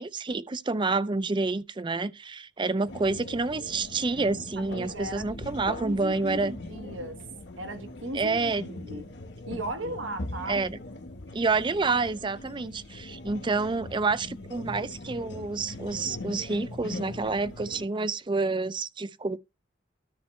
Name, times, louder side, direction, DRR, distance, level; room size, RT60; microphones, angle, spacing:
voice 1, 0.0-6.5 8.1-8.6 10.5-10.8 11.3-19.4, right 3 dB, 25° right, 0.4 m, -28 dB
sound 1, 2.8-17.8, left 2 dB, 65° left, 1.2 m, -41 dB
voice 2, 4.6-5.3 5.7-7.2 7.6-9.1 9.5-10.6, right 1 dB, 85° right, 1.2 m, -37 dB
13.0 x 5.5 x 3.1 m
head